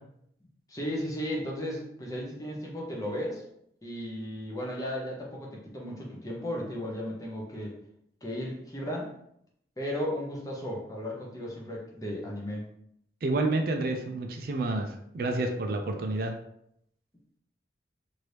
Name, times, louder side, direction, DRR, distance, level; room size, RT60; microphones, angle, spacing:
voice 1, 0.7-3.4 3.8-7.7 8.2-9.1 9.8-12.7, equal, 20° left, -2 dB, 0.7 m, -35 dB
voice 2, 13.2-16.3, right 2 dB, 50° right, 5 dB, 0.4 m, -29 dB
3.0 x 2.6 x 3.2 m, 0.72 s
head